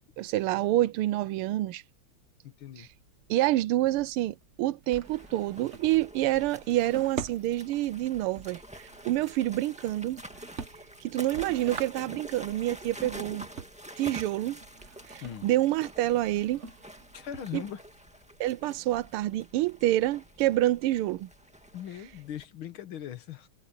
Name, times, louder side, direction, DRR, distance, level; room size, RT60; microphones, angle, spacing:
voice 1, 0.2-1.8 2.8-2.9 3.3-10.2 11.0-13.5 14.0-14.6 15.1-16.6 17.5-17.6 18.4-21.3, right 15 dB, 85° right, 1.5 m, -27 dB
voice 2, 2.4-2.9 15.2-15.5 17.1-17.8 21.7-23.5, left 10 dB, 70° left, 2.0 m, -40 dB
Drawer open or close, 2.8-18.0, right 5 dB, 40° right, 1.2 m, -46 dB
sound 1, 5.0-22.4, equal, 5° right, 1.7 m, -48 dB
omnidirectional pair, 2.4 m